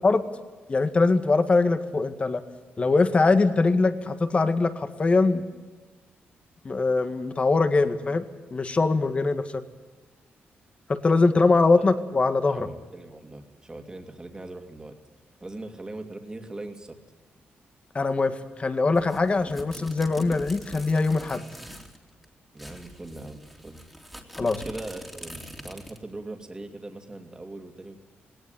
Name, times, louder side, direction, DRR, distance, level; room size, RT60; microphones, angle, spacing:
voice 1, 0.7-2.4 2.8-5.4 6.6-8.2 8.5-9.6 10.9-12.7 17.9-21.4 24.4-24.6, left 3 dB, 30° left, 9 dB, 1.9 m, -22 dB
voice 2, 12.5-14.9 15.4-17.0 22.5-23.9 24.4-28.0, right 2 dB, 20° right, 4 dB, 2.7 m, -40 dB
sound 1, 18.9-22.0 22.2-22.3 22.6-26.1, equal, ahead, 3.0 m, -43 dB
19.0 x 18.5 x 9.2 m, 1.3 s
cardioid pair, 110°, 4 cm